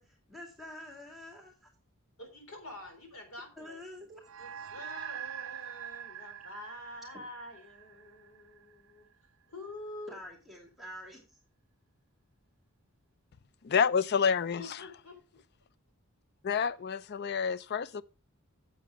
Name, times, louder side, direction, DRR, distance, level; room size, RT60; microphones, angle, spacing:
voice 1, 0.0-1.7 3.6-4.2 7.1-7.2 10.1-11.2, left 1 dB, ahead, 2.6 m, -47 dB
voice 2, 2.2-3.8 4.4-9.1 9.5-10.1 14.6-15.2, left 1 dB, 65° left, 3.8 m, -46 dB
sound 1, 4.2-8.9, right 10 dB, 60° right, 0.4 m, -44 dB
voice 3, 13.6-14.6 16.4-18.0, left 6 dB, 50° left, 0.4 m, -28 dB
9.1 x 7.7 x 4.8 m
head